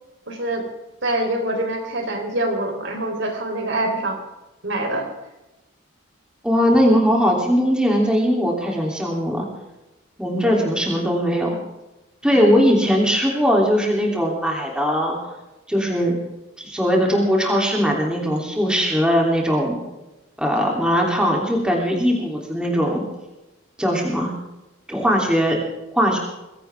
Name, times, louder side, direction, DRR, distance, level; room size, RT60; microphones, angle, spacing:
voice 1, 0.3-0.6 1.0-4.2 4.6-5.1 10.4-10.7 12.3-12.5, right 1 dB, 60° right, 3 dB, 3.9 m, -25 dB
voice 2, 6.4-9.4 10.2-11.5 12.2-15.3 15.7-16.1 16.6-19.8 20.4-23.0 23.8-24.3 24.9-25.6 25.9-26.2, equal, 5° right, -1 dB, 3.2 m, -19 dB
22.0 x 16.5 x 3.6 m, 0.99 s
head